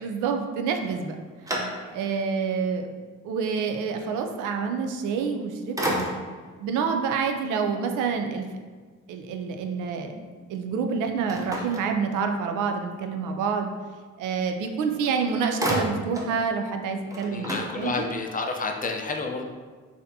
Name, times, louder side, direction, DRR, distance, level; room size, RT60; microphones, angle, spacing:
voice 1, 0.0-1.2 1.9-2.9 3.2-6.0 6.6-8.5 9.1-10.1 10.5-13.7 14.2-18.1, right 5 dB, 90° right, 5 dB, 0.5 m, -27 dB
sound 1, 0.8-2.2 2.8-2.9 5.1-5.4 5.8-6.5 11.3-12.6 14.7-14.8 15.1-16.4 16.7-16.8 17.1-18.3, equal, 10° right, 0.6 m, -32 dB
voice 2, 17.3-19.5, left 3 dB, 30° left, 3 dB, 0.4 m, -30 dB
4.1 x 2.8 x 2.7 m, 1.5 s
cardioid pair, 90°, 30 cm